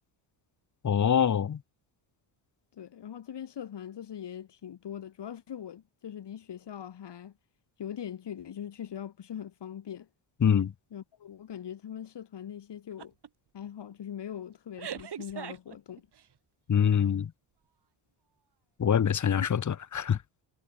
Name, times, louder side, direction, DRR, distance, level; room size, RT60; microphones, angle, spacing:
voice 1, 0.8-1.6 10.4-10.7 16.7-17.3 18.8-20.2, left 8 dB, 35° left, 1.3 m, -24 dB
voice 2, 2.7-7.3 7.8-10.1 10.9-13.1 13.5-16.1 19.4-19.5, left 9 dB, 55° left, 5.9 m, -41 dB
sound 1, 13.0-13.3 13.7-13.9 14.8-16.3, right 8 dB, 55° right, 7.6 m, -40 dB
cardioid pair, 100°, 49 cm